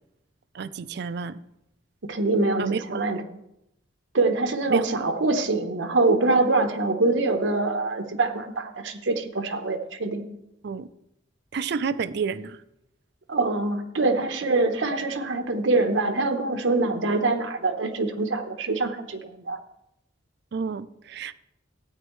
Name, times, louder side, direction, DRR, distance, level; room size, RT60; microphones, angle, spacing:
voice 1, 0.5-1.4 2.6-3.1 4.7-4.8 10.6-10.9 11.5-12.6 20.5-21.3, right 5 dB, 60° right, 15 dB, 0.4 m, -30 dB
voice 2, 2.0-3.2 4.1-10.2 13.3-19.6, right 3 dB, 85° right, 6 dB, 0.9 m, -24 dB
14.0 x 9.0 x 3.1 m, 0.81 s
head